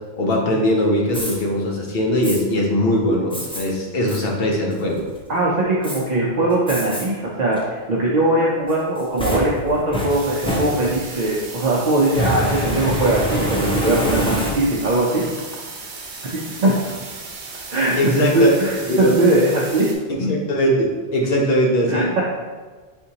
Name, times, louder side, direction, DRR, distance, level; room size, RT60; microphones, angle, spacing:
voice 1, 0.2-5.0 18.0-18.5 18.9-19.1 20.1-22.2, equal, 60° left, 0 dB, 0.9 m, -20 dB
Fire, 1.1-1.4 2.2-2.4 3.3-3.6 4.1-4.2 4.7-5.2 5.8-6.0 6.7-7.0 7.5-7.6 8.7-11.2 12.0-14.9, equal, 10° left, 0.4 m, -25 dB
voice 2, 5.3-15.2 16.3-16.7 17.7-19.9 21.9-22.2, right 2 dB, 50° right, -5 dB, 0.6 m, -20 dB
sound 1, 10.1-19.9, right 4 dB, 75° right, 1.0 m, -36 dB
4.4 x 3.8 x 2.8 m, 1.4 s
omnidirectional pair, 1.2 m